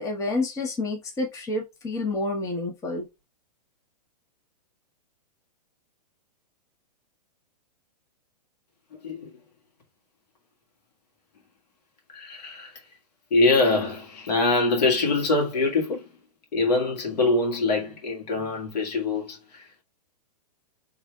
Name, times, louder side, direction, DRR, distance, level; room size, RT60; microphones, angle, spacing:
voice 1, 0.0-3.1, left 2 dB, 15° left, 0.9 m, -29 dB
voice 2, 8.9-9.4 12.1-12.9 13.3-16.1 16.5-19.8, left 3 dB, 75° left, 2.0 m, -24 dB
3.4 x 3.4 x 2.3 m
hypercardioid pair, 135°, 21 cm